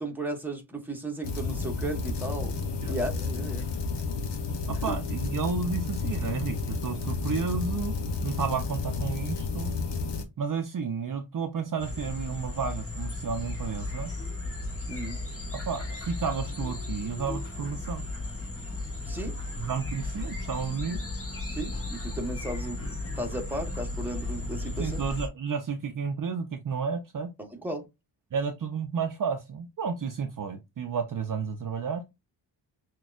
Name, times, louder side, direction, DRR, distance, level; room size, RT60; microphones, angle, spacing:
voice 1, 0.0-2.6 2.9-3.6 4.9-5.0 14.9-15.2 19.1-19.4 21.5-25.0 27.4-27.8, right 1 dB, 5° right, 1.1 m, -35 dB
sound 1, 1.2-10.2, left 4 dB, 65° left, 1.0 m, -31 dB
voice 2, 4.7-9.8 10.4-14.1 15.5-18.1 19.6-21.0 24.8-27.3 28.3-32.0, right 6 dB, 45° right, 0.6 m, -32 dB
sound 2, 11.8-25.3, left 2 dB, 30° left, 1.4 m, -35 dB
6.1 x 2.3 x 2.4 m
wide cardioid pair, 105°, 44 cm